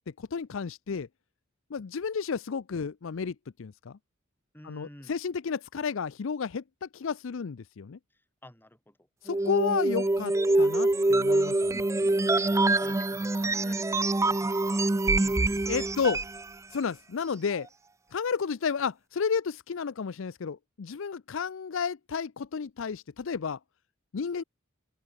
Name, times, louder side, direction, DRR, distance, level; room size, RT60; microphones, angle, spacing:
voice 1, 0.2-1.1 1.7-4.0 4.6-8.0 9.2-11.8 15.7-16.2 16.7-17.7 18.1-23.6 24.1-24.4, left 6 dB, 65° left, 0.5 m, -32 dB
voice 2, 4.5-5.2 8.1-9.0 12.8-13.9 14.2-15.9, left 1 dB, 10° left, 5.0 m, -51 dB
sound 1, 9.3-16.4, right 2 dB, 15° right, 0.4 m, -25 dB
open air
head